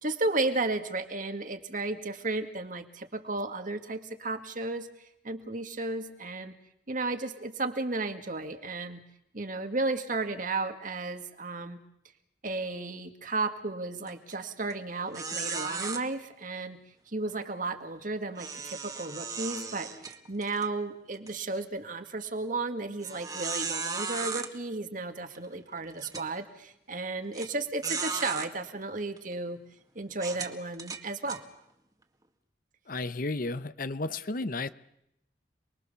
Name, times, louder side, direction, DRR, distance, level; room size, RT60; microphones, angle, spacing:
voice 1, 0.0-6.6 6.9-9.0 9.3-11.8 12.4-16.8 17.1-29.6 30.0-31.4, right 3 dB, 50° right, 7 dB, 2.1 m, -34 dB
sound 1, 14.1-14.3 14.7-14.8 15.1-16.0 18.4-20.7 21.1-21.3 21.9-22.0 23.0-24.5 25.3-25.4 26.0-26.3 27.3-27.5 27.8-28.5 29.2-29.3 30.1-31.4, right 4 dB, 20° right, 1.9 m, -35 dB
voice 2, 32.9-34.7, left 2 dB, 50° left, 14 dB, 0.9 m, -33 dB
28.5 x 21.5 x 7.0 m, 0.79 s
head